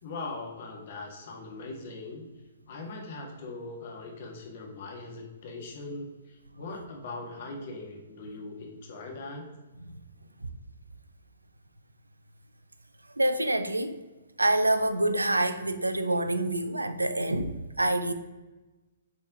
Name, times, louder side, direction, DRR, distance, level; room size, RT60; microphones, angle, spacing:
voice 1, 0.0-2.3 2.7-9.4, left 3 dB, 50° left, 1 dB, 1.9 m, -40 dB
voice 2, 13.2-14.0 14.4-18.1, right 1 dB, 85° right, 10 dB, 0.6 m, -26 dB
8.3 x 4.3 x 3.8 m, 1.1 s
figure-of-eight pair, 120°, 0 cm